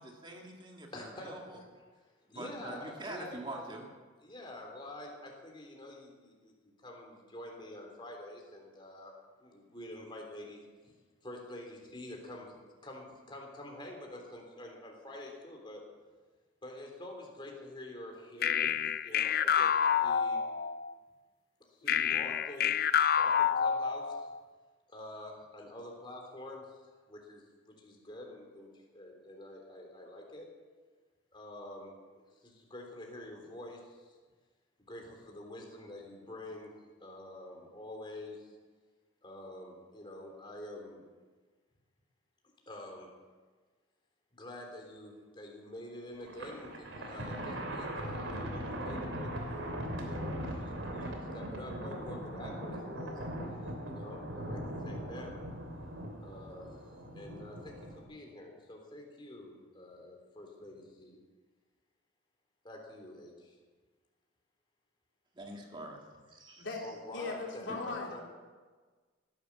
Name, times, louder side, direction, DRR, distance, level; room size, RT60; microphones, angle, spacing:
voice 1, 0.0-1.6 2.3-3.8 65.4-66.0 66.3-66.7 67.7-67.8, right 1 dB, 25° right, 0 dB, 1.9 m, -44 dB
voice 2, 0.9-1.6 2.3-3.6 4.2-9.1 9.4-10.6 11.2-15.9 16.6-20.4 21.7-22.7 23.2-24.3 24.9-30.5 31.3-34.2 34.8-36.7 37.0-38.5 39.2-41.0 42.7-43.1 44.3-53.2 53.9-55.4 56.2-56.8 57.1-61.2 62.6-63.5 66.8-68.2, left 1 dB, 25° left, 0 dB, 3.4 m, -47 dB
sound 1, 18.4-20.9 21.9-24.4, left 8 dB, 50° left, 0.4 m, -28 dB
Thunder, 46.2-58.0, equal, 80° right, 3.1 m, -40 dB
voice 3, 67.1-68.2, left 3 dB, 65° left, -2 dB, 3.7 m, -38 dB
17.5 x 11.0 x 7.2 m, 1.4 s
head